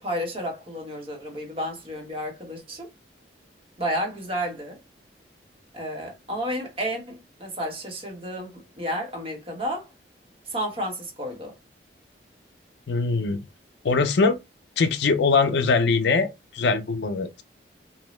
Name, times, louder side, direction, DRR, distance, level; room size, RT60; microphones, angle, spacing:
voice 1, 0.0-2.9 3.8-4.8 5.7-9.9 10.5-11.5, equal, 30° right, 0.9 m, -31 dB
voice 2, 12.9-13.4 13.8-14.4 14.8-17.4, left 4 dB, 70° left, 0.4 m, -22 dB
2.6 x 2.0 x 3.0 m
head